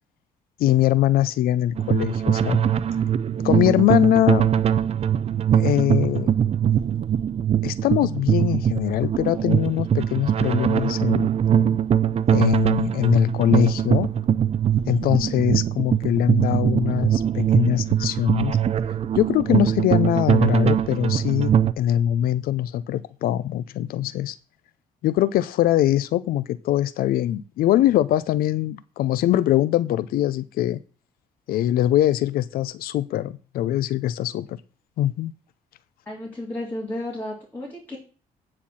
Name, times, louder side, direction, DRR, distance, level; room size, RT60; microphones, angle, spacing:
voice 1, 0.6-2.6 3.4-4.5 5.5-6.3 7.6-11.3 12.3-14.1 14.9-18.6 19.1-24.3 25.0-30.8 31.5-34.6 35.0-35.3, left 12 dB, 80° left, 0.5 m, -22 dB
sound 1, 1.8-21.7, right 9 dB, 45° right, 0.5 m, -22 dB
voice 2, 36.0-38.0, left 1 dB, 10° left, 3.2 m, -33 dB
9.7 x 4.4 x 7.1 m
cardioid pair, 100°, 15 cm